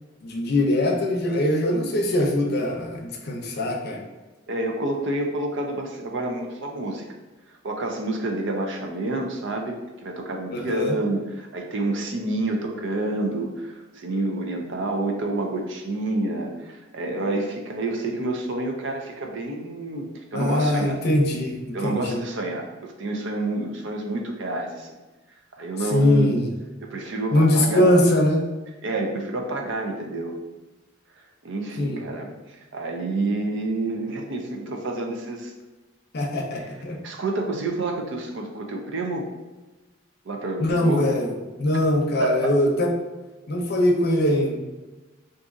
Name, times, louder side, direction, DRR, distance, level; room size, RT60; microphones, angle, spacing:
voice 1, 0.2-4.0 10.5-11.0 20.3-22.2 25.9-26.5 27.3-28.4 31.8-32.0 36.1-37.0 40.6-41.3 41.6-42.9 43.5-44.5, left 1 dB, 55° left, 1 dB, 0.6 m, -22 dB
voice 2, 4.5-7.0 7.6-20.0 20.3-21.0 21.7-24.9 25.6-26.3 26.8-27.9 28.8-30.4 31.4-32.3 32.7-35.5 37.0-39.2 40.3-41.1 42.2-42.4, right 2 dB, 70° right, 2 dB, 0.5 m, -28 dB
2.6 x 2.4 x 3.8 m, 1.2 s
head